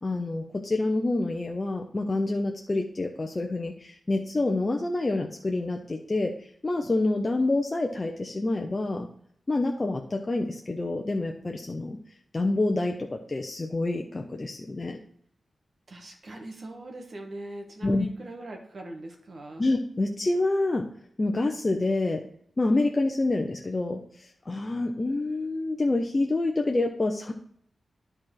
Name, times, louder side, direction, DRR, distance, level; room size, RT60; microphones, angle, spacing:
voice 1, 0.0-9.1 9.5-12.0 12.3-15.0 17.8-18.1 19.6-20.9 21.2-22.2 22.6-27.3, left 2 dB, 35° left, 2 dB, 0.8 m, -27 dB
voice 2, 15.9-19.7, right 1 dB, 55° right, 2 dB, 1.6 m, -41 dB
10.0 x 4.4 x 4.9 m, 0.63 s
cardioid pair, 70°, 0 cm